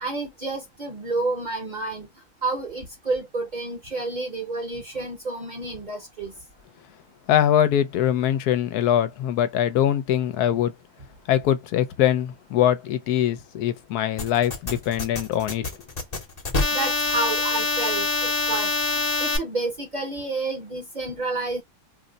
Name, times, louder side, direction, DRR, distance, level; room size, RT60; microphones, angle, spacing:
voice 1, 0.0-2.1 2.4-6.3 16.7-18.7 19.2-21.6, right 2 dB, 35° right, 0.8 m, -30 dB
voice 2, 7.3-10.7 11.3-15.6, left 10 dB, 80° left, 1.1 m, -22 dB
sound 1, 14.2-19.4, left 3 dB, 35° left, 0.7 m, -25 dB
2.8 x 2.0 x 3.8 m
omnidirectional pair, 1.6 m